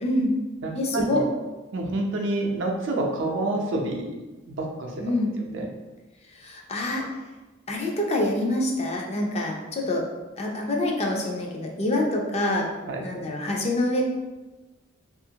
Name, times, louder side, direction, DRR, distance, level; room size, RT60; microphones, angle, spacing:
voice 1, 0.0-0.3 0.7-1.2 5.0-5.4 6.4-7.1 7.7-10.0 10.4-12.7 13.0-14.0, left 1 dB, 30° left, 0 dB, 0.4 m, -26 dB
voice 2, 0.6-1.3 1.7-4.1 4.5-4.9 5.5-5.6 12.9-13.2, right 2 dB, 65° right, 0 dB, 0.5 m, -28 dB
2.8 x 2.5 x 2.7 m, 1.1 s
head